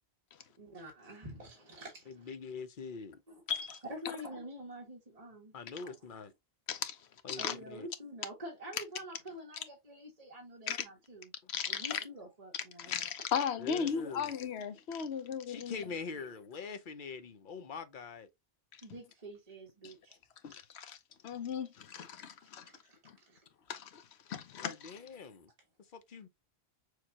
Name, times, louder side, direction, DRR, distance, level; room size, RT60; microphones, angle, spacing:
voice 1, 0.6-2.3 3.3-3.4 3.8-5.5 5.8-5.9 7.3-11.3 11.7-12.9 18.8-20.2 21.3-21.4 22.0-22.1 22.6-23.0 23.3-23.4, equal, 35° right, 1.6 m, -47 dB
voice 2, 2.1-3.2 5.5-6.3 7.2-7.9 13.6-14.3 15.5-18.3 24.6-25.5 25.8-26.3, left 5 dB, 55° left, 0.8 m, -44 dB
voice 3, 3.5-3.8 6.7-7.0 7.3-7.5 10.7-10.8 11.5-12.0 12.8-15.8 18.7-18.8 19.8-19.9 20.4-21.0 21.2-22.7 23.0-23.2 23.7-24.0 24.3-25.0, left 7 dB, 90° left, 1.0 m, -36 dB
6.5 x 2.4 x 2.8 m
omnidirectional pair, 1.1 m